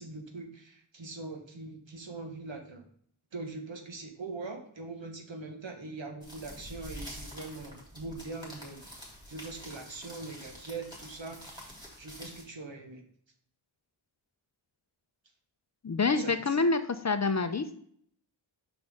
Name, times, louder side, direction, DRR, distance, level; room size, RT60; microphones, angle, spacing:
voice 1, 0.0-2.8 3.3-11.4 12.0-13.0 16.1-16.6, right 3 dB, 70° right, 4 dB, 1.3 m, -42 dB
sound 1, 6.2-12.4, equal, 10° right, 3.0 m, -47 dB
voice 2, 15.8-16.8 17.0-17.7, left 4 dB, 35° left, 10 dB, 0.5 m, -26 dB
6.5 x 6.0 x 3.5 m, 0.63 s
wide cardioid pair, 60°, 47 cm